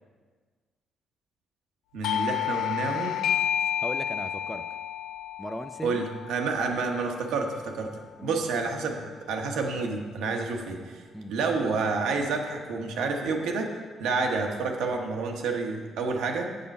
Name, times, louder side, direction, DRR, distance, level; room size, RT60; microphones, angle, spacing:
voice 1, 1.9-3.2 5.8-7.9 8.2-11.0 11.3-13.7 14.0-16.5, right 4 dB, 85° right, 2 dB, 1.0 m, -29 dB
Doorbell, 2.0-7.3, left 10 dB, 80° left, 0.5 m, -30 dB
voice 2, 3.8-4.7 5.4-6.0 8.2-8.7 11.1-11.3, equal, ahead, 9 dB, 0.4 m, -37 dB
6.8 x 6.7 x 5.3 m, 1.5 s
cardioid pair, 90°, 0 cm